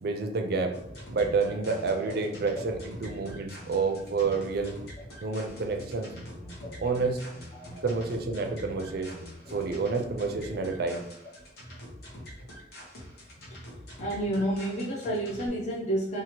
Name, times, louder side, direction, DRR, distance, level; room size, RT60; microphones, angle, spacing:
voice 1, 0.0-0.7 1.1-4.8 5.2-6.1 6.8-7.2 7.8-9.1 9.5-11.0, right 4 dB, 60° right, 5 dB, 0.4 m, -29 dB
sound 1, 0.7-15.5, equal, 60° left, 0.9 m, -45 dB
sound 2, 0.8-5.1 5.7-10.0, left 1 dB, ahead, 0.6 m, -48 dB
voice 2, 7.5-7.9 13.5-13.6 14.0-16.2, right 1 dB, 40° left, -4 dB, 0.5 m, -30 dB
2.8 x 2.4 x 2.9 m, 0.86 s
head